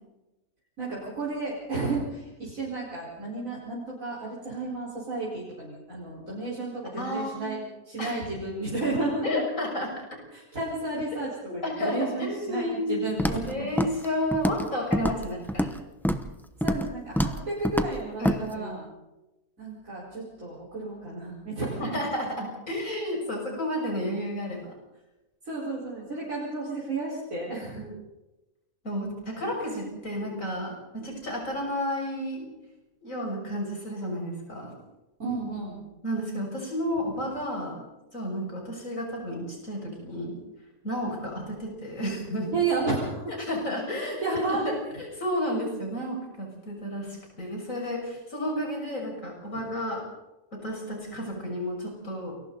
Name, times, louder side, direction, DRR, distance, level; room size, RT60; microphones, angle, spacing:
voice 1, 0.8-7.6 7.8-9.4 10.3-13.7 16.6-18.9 19.6-22.0 25.4-27.8 35.2-35.8 42.5-43.3 44.0-44.8 49.5-49.6, right 3 dB, 60° right, -6 dB, 5.2 m, -32 dB
voice 2, 6.9-7.6 8.0-8.3 9.2-10.0 11.6-15.7 18.2-18.7 21.8-24.7 27.7-28.0 28.8-32.4 33.0-34.7 36.0-37.8 38.1-40.4 40.8-42.5 43.4-44.7 45.0-50.0 50.5-52.4, equal, 60° left, 0 dB, 7.0 m, -32 dB
Walk footsteps, 13.2-13.5 13.8-14.1 14.3-14.7 14.9-15.8 16.0-16.3 16.6-16.9 17.2-17.4 17.6-17.9 18.2-18.4, equal, ahead, 0.8 m, -26 dB
29.0 x 22.5 x 4.1 m, 1.0 s
omnidirectional pair, 1.6 m